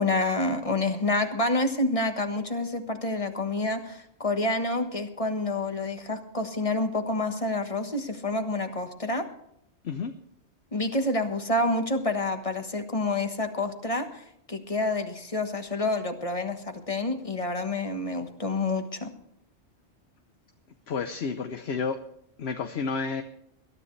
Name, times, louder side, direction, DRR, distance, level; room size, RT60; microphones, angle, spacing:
voice 1, 0.0-9.3 10.7-19.1, left 2 dB, 30° left, 6 dB, 1.4 m, -28 dB
voice 2, 20.9-22.0 22.4-23.2, left 5 dB, 65° left, 8 dB, 1.1 m, -30 dB
21.5 x 12.5 x 3.2 m, 0.73 s
omnidirectional pair, 1.2 m